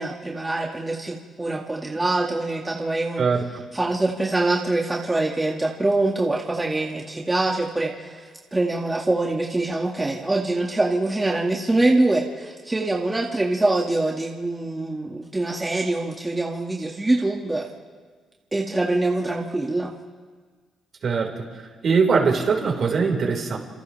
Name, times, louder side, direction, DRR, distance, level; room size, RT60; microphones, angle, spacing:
voice 1, 0.0-3.3 3.7-17.7 18.5-19.9, right 2 dB, 15° right, -2 dB, 2.2 m, -24 dB
voice 2, 21.0-21.4 21.8-23.6, right 5 dB, 55° right, 0 dB, 5.1 m, -21 dB
30.0 x 27.0 x 3.5 m, 1.5 s
cardioid pair, 90°, 0 cm